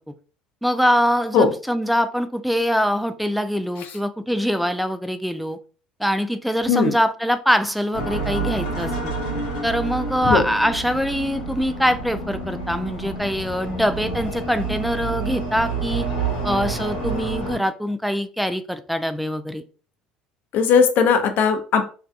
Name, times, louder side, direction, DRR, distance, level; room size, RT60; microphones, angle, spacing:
voice 1, 0.6-5.6 6.0-9.1 9.6-16.1 16.4-19.6, equal, ahead, 9 dB, 0.3 m, -23 dB
sound 1, 7.9-17.6, right 3 dB, 90° left, 1.0 m, -28 dB
voice 2, 20.5-21.8, left 6 dB, 60° left, 6 dB, 0.5 m, -17 dB
2.6 x 2.2 x 2.4 m, 0.39 s
hypercardioid pair, 70°, 4 cm